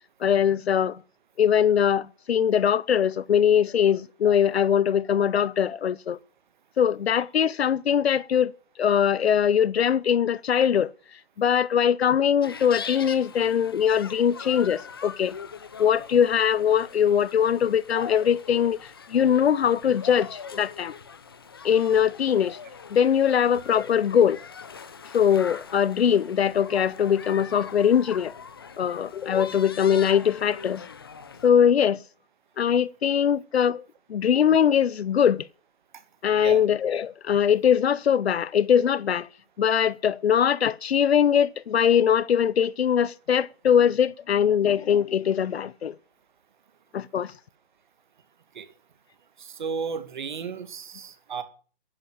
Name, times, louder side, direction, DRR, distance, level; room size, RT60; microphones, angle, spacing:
voice 1, 0.2-1.0 1.4-6.2 6.8-8.5 8.8-10.9 11.4-15.3 15.8-20.9 21.6-22.6 22.9-24.4 25.1-28.3 28.8-30.8 31.4-32.0 32.6-35.5 36.2-39.3 39.6-45.9 46.9-47.3, left 8 dB, 75° left, 0.8 m, -22 dB
sound 1, 12.4-31.5, left 6 dB, 25° left, 0.7 m, -42 dB
voice 2, 49.4-51.4, right 5 dB, 50° right, 2.3 m, -34 dB
11.5 x 10.0 x 10.0 m
hypercardioid pair, 180°, 31 cm